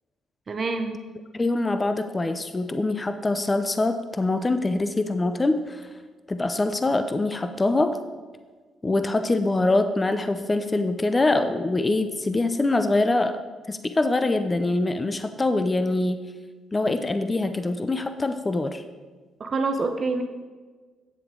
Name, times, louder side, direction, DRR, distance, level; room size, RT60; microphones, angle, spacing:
voice 1, 0.5-1.0 19.4-20.2, right 3 dB, 40° right, 6 dB, 0.8 m, -26 dB
voice 2, 1.3-5.8 6.3-8.0 8.8-13.4 13.7-16.2 16.7-18.8, left 2 dB, 20° left, 9 dB, 0.5 m, -24 dB
9.0 x 7.7 x 3.8 m, 1.4 s
cardioid pair, 90°, 0 cm